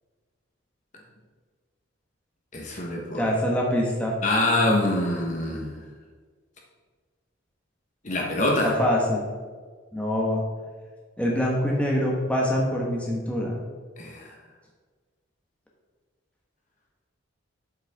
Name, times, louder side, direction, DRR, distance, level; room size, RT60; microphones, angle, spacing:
voice 1, 2.5-3.3 4.2-5.8 8.0-8.7 14.0-14.3, left 1 dB, 35° left, -1 dB, 1.1 m, -25 dB
voice 2, 3.1-4.1 8.6-9.3 9.9-10.4 11.2-13.6, equal, 5° left, -3 dB, 1.2 m, -24 dB
8.0 x 7.9 x 3.6 m, 1.5 s
head